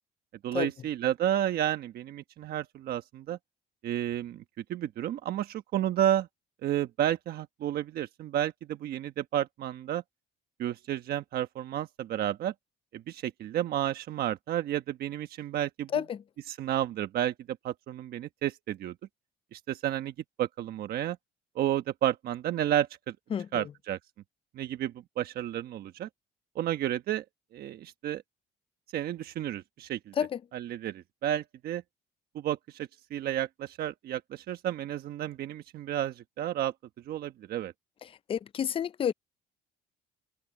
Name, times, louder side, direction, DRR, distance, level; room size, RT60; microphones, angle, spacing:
voice 1, 0.4-3.4 3.8-4.4 4.7-6.3 6.6-10.0 10.6-12.5 12.9-15.9 16.5-17.3 17.6-18.9 19.5-20.1 20.4-21.2 21.5-23.1 23.5-24.0 24.6-26.1 26.5-27.2 27.5-28.2 28.9-30.1 30.5-31.8 32.3-36.7 37.1-37.7, right 11 dB, 65° right, 1.2 m, -31 dB
voice 2, 15.9-16.2 23.3-23.7 30.2-30.4 38.0-39.1, left 8 dB, 30° left, 0.5 m, -30 dB
cardioid pair, 110°, 17 cm